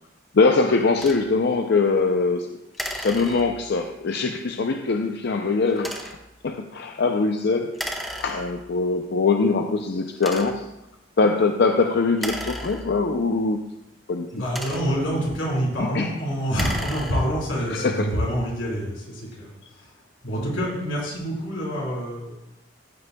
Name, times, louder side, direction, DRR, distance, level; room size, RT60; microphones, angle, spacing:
voice 1, 0.3-2.6 2.9-6.2 6.4-10.7 11.2-13.7 14.1-14.3 15.8-16.1 17.7-18.1, left 4 dB, 60° left, 5 dB, 0.5 m, -22 dB
sound 1, 1.0-1.3 2.7-3.8 5.7-6.3 7.7-8.8 9.4-9.5 10.2-10.8 12.1-13.3 14.2-15.1 16.4-17.5, equal, ahead, 0.8 m, -34 dB
voice 2, 14.3-19.9 20.2-22.3, equal, 90° left, -4 dB, 3.9 m, -27 dB
15.0 x 8.2 x 2.3 m, 0.89 s
head